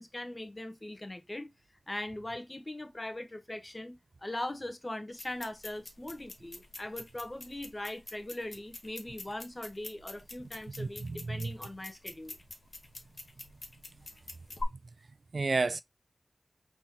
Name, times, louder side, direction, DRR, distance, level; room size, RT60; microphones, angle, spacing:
voice 1, 0.0-1.5 1.9-12.4, left 1 dB, 30° left, 1.0 m, -40 dB
sound 1, 5.1-14.6, left 3 dB, 60° left, 1.1 m, -47 dB
voice 2, 10.8-11.5 15.3-15.8, right 3 dB, 65° right, 0.3 m, -31 dB
4.2 x 3.7 x 2.8 m
cardioid pair, 50°, 0 cm